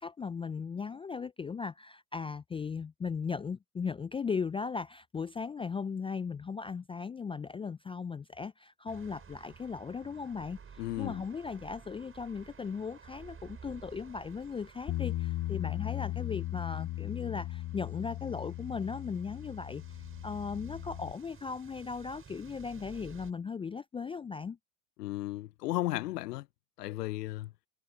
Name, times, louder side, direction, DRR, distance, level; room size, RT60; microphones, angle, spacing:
voice 1, 0.0-19.8 20.2-24.6, left 5 dB, 10° left, 0.4 m, -37 dB
sound 1, 8.9-23.3, right 6 dB, 25° right, 7.0 m, -54 dB
voice 2, 10.8-11.2 25.0-26.5 26.8-27.5, left 17 dB, 75° left, 1.0 m, -34 dB
Bass guitar, 14.9-21.1, left 15 dB, 40° left, 1.1 m, -37 dB
hypercardioid pair, 80°, 48 cm